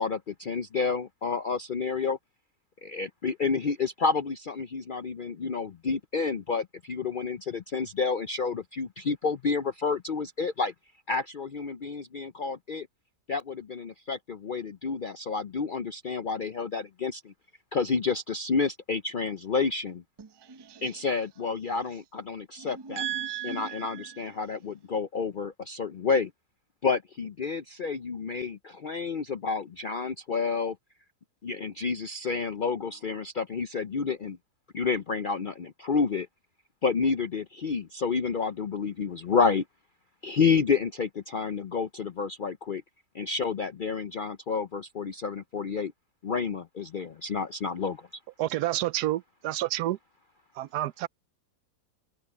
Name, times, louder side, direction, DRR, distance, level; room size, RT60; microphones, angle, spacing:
voice 1, 0.0-2.2 2.8-10.7 11.1-12.9 13.3-17.3 17.7-20.0 20.8-23.0 23.4-26.3 26.8-30.8 31.4-34.4 34.7-36.3 36.8-39.6 40.2-42.8 43.1-45.9 46.2-48.1, left 5 dB, 70° left, 0.4 m, -29 dB
voice 2, 20.2-20.9 22.6-24.2, right 9 dB, 35° right, 0.4 m, -37 dB
voice 3, 48.4-50.0 50.6-51.1, right 14 dB, 80° right, 1.1 m, -29 dB
omnidirectional pair, 1.7 m